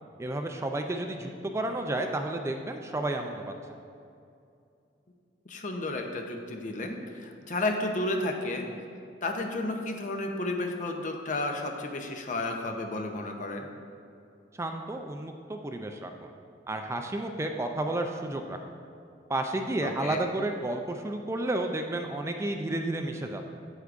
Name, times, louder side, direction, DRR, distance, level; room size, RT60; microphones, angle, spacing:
voice 1, 0.2-3.4 14.5-16.3 16.7-18.6 19.3-23.5, right 2 dB, 15° right, 4 dB, 0.3 m, -31 dB
voice 2, 5.5-8.7 9.2-13.7 19.8-20.2, left 2 dB, 45° left, 3 dB, 0.7 m, -32 dB
8.2 x 8.0 x 2.5 m, 2.5 s
head